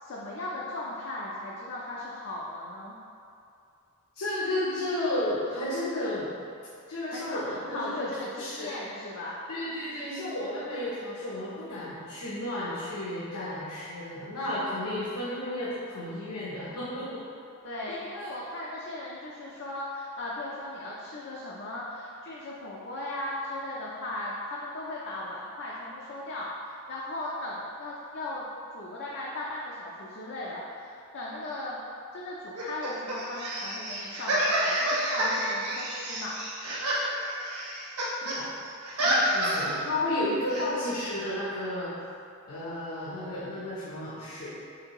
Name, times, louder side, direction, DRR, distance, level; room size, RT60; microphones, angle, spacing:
voice 1, 0.0-3.0 7.1-9.4 17.6-28.5 28.7-31.8 32.1-36.3, left 1 dB, 55° left, -5 dB, 0.5 m, -37 dB
voice 2, 4.1-6.3 6.9-8.7 9.5-17.2 17.9-18.3 38.2-38.5 39.0-41.9 42.5-44.5, left 1 dB, 80° left, -9 dB, 0.8 m, -33 dB
sound 1, 32.5-38.4 38.6-39.8 40.5-40.7, right 1 dB, 90° right, 0.9 m, -29 dB
5.8 x 2.7 x 3.0 m, 2.5 s
head